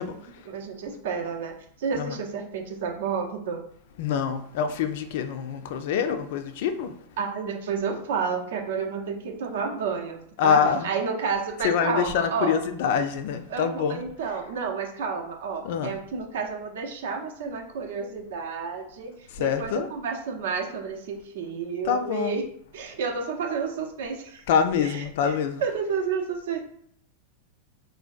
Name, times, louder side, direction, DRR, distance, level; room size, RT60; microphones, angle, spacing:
voice 1, 0.5-3.6 7.2-12.6 13.5-22.4 22.7-24.4 24.8-26.6, right 5 dB, 60° right, 0.5 m, -31 dB
voice 2, 4.0-6.9 10.4-10.9 11.6-14.0 15.6-15.9 19.3-19.9 21.9-22.4 24.5-25.6, left 7 dB, 50° left, 0.3 m, -25 dB
3.9 x 2.1 x 2.4 m
figure-of-eight pair, 90°, 0 cm